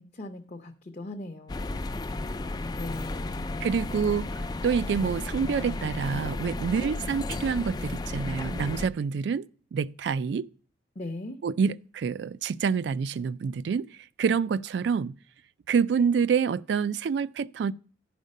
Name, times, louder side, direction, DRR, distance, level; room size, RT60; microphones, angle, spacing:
voice 1, 0.0-1.9 2.7-3.5 6.8-6.9 11.0-11.4, left 2 dB, 40° left, 0.7 m, -39 dB
sound 1, 1.5-8.9, left 2 dB, 20° left, 0.3 m, -33 dB
voice 2, 3.6-4.3 4.6-9.5 9.7-10.5 11.4-13.9 14.2-15.1 15.7-17.7, right 6 dB, 75° right, 0.3 m, -27 dB
10.5 x 5.1 x 5.3 m
head